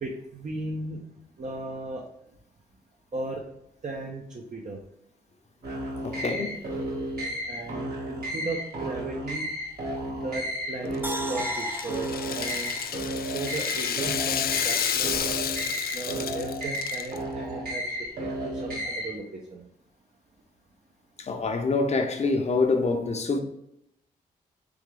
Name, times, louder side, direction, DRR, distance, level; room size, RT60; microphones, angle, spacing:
voice 1, 0.0-1.0 1.4-2.0 3.1-3.4 3.8-4.8 7.5-9.4 10.2-12.7 13.2-15.3 15.9-19.2 19.5-19.6, right 2 dB, 45° right, 0.8 m, -36 dB
sound 1, 5.6-19.1, right 1 dB, 60° right, 1.6 m, -33 dB
voice 2, 6.0-6.6 21.2-23.4, left 3 dB, 40° left, 0.8 m, -26 dB
Rattle (instrument), 10.9-17.2, left 9 dB, 60° left, 0.4 m, -31 dB
sound 2, 11.0-14.2 14.6-14.7, equal, 10° right, 0.6 m, -38 dB
3.5 x 3.5 x 3.3 m
supercardioid pair, 50°, 18 cm